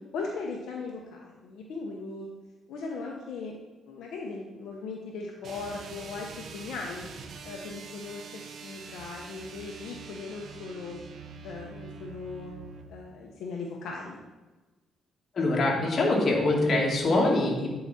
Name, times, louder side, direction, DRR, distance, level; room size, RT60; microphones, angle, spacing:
voice 1, 0.1-2.3 2.7-3.6 3.9-7.1 7.4-11.0 11.4-12.5 12.9-14.2, left 4 dB, 80° left, 0 dB, 0.9 m, -38 dB
sound 1, 5.4-12.9, right 5 dB, 60° right, 0.7 m, -44 dB
voice 2, 15.3-17.7, left 2 dB, 45° left, -1 dB, 2.0 m, -24 dB
8.6 x 4.8 x 4.2 m, 1.2 s
cardioid pair, 90°, 0 cm